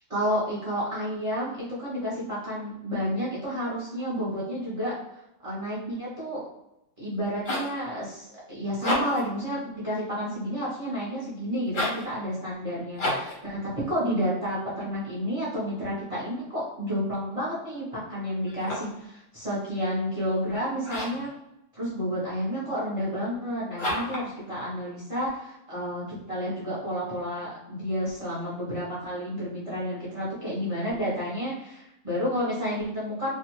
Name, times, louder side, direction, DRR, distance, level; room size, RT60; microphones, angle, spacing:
voice 1, 0.1-4.9 5.4-6.4 7.0-21.3 21.7-33.3, equal, 35° right, -8 dB, 0.6 m, -30 dB
sound 1, 7.1-7.8 8.7-9.3 11.6-12.1 13.0-13.4 18.4-19.0 20.8-21.3 23.8-24.3, left 1 dB, 45° left, 0.7 m, -30 dB
2.6 x 2.3 x 2.9 m, 0.86 s
omnidirectional pair, 1.7 m